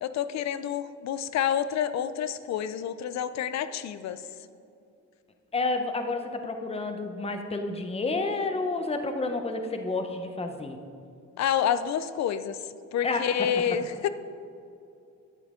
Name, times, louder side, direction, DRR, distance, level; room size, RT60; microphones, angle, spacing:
voice 1, 0.0-4.2 11.4-12.6 12.9-14.1, left 9 dB, 65° left, 13 dB, 0.5 m, -28 dB
voice 2, 5.5-10.8 13.0-13.5, left 3 dB, 20° left, 6 dB, 0.8 m, -30 dB
10.0 x 8.6 x 3.7 m, 2.5 s
cardioid pair, 90°, 30 cm